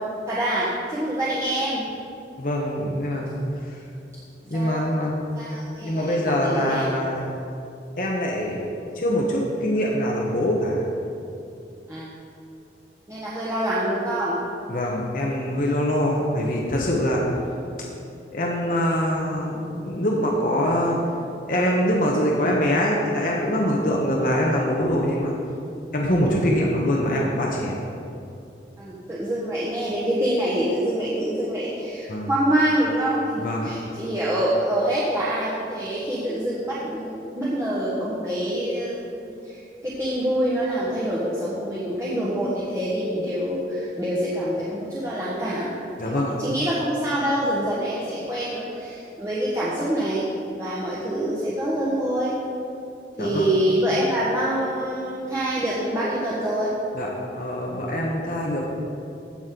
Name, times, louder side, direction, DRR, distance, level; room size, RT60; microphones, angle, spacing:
voice 1, 0.3-1.9 4.5-4.8 5.3-6.8 11.9-12.1 13.1-14.4 28.8-45.7 46.0-50.2 50.6-52.3 53.2-56.7, right 1 dB, 15° right, -9 dB, 1.3 m, -26 dB
voice 2, 2.4-3.8 4.5-5.2 5.8-7.3 8.0-8.7 8.9-10.9 14.7-17.2 18.3-21.0 21.5-25.3 25.9-27.8 32.1-32.3 33.4-33.7 46.0-46.3 53.2-53.5 56.9-57.1 57.3-58.6, equal, 50° left, -2 dB, 1.0 m, -24 dB
15.5 x 6.3 x 3.8 m, 2.6 s
head